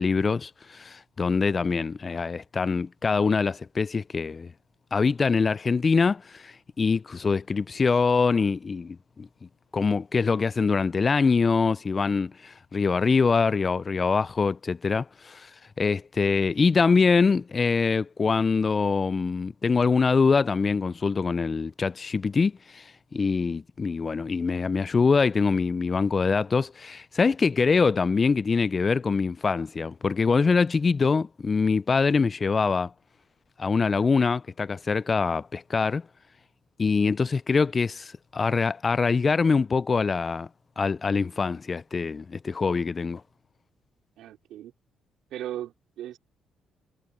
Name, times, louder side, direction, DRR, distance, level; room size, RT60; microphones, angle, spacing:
voice 1, 0.0-4.5 4.9-9.3 9.7-15.5 15.8-32.9 33.6-36.0 36.8-40.5 40.8-43.2, left 4 dB, 35° left, 0.3 m, -24 dB
voice 2, 44.2-44.7 45.3-46.2, right 12 dB, 85° right, 4.2 m, -37 dB
cardioid pair, 90°, 0 cm